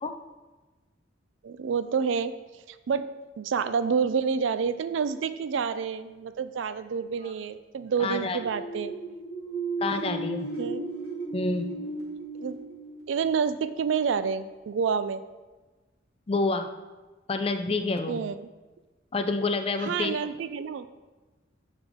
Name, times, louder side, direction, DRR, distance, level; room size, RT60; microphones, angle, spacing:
voice 1, 1.4-2.4 2.7-3.1 3.4-8.9 10.6-10.9 12.4-12.6 13.1-15.2 18.1-18.4 19.8-20.9, right 6 dB, 80° right, 13 dB, 0.4 m, -28 dB
voice 2, 8.0-8.4 9.8-10.5 11.3-11.7 16.3-16.7 17.3-18.2 19.1-20.2, left 3 dB, 30° left, 7 dB, 0.4 m, -28 dB
sound 1, 8.2-13.9, right 2 dB, 30° right, 2.2 m, -35 dB
10.5 x 3.7 x 3.6 m, 1.2 s
head